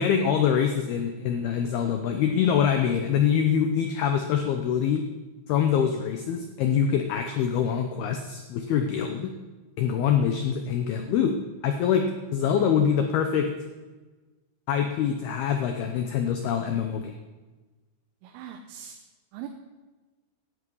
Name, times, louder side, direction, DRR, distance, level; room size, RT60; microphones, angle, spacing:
voice 1, 0.0-5.0 5.5-9.3 9.8-11.3 11.6-13.5 14.7-17.2, left 8 dB, 85° left, 5 dB, 2.2 m, -24 dB
voice 2, 18.2-19.0 19.3-19.5, right 10 dB, 85° right, 4 dB, 3.6 m, -40 dB
17.5 x 11.5 x 5.5 m, 1.2 s
omnidirectional pair, 5.8 m